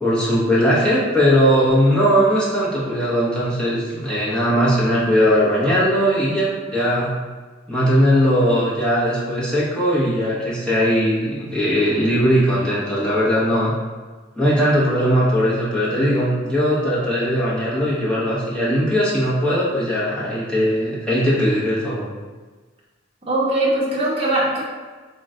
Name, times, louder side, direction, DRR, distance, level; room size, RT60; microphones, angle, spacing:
voice 1, 0.0-7.1 7.7-13.7 14.4-22.1, equal, 5° left, -9 dB, 0.9 m, -19 dB
voice 2, 23.3-24.6, right 1 dB, 30° right, -6 dB, 0.8 m, -20 dB
3.9 x 2.1 x 3.7 m, 1.4 s
head